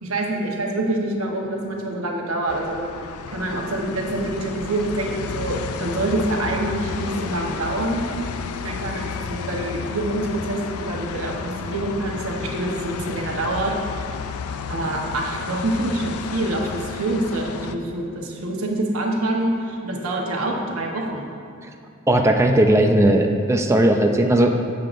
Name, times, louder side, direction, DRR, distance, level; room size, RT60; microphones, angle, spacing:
voice 1, 0.0-2.9 3.3-8.1 8.6-13.9 14.7-21.2, right 1 dB, 75° right, 0 dB, 1.1 m, -26 dB
sound 1, 2.5-17.8, left 5 dB, 85° left, 0.4 m, -32 dB
voice 2, 22.1-24.7, right 1 dB, 15° right, 3 dB, 0.4 m, -17 dB
11.5 x 7.6 x 2.5 m, 2.5 s
head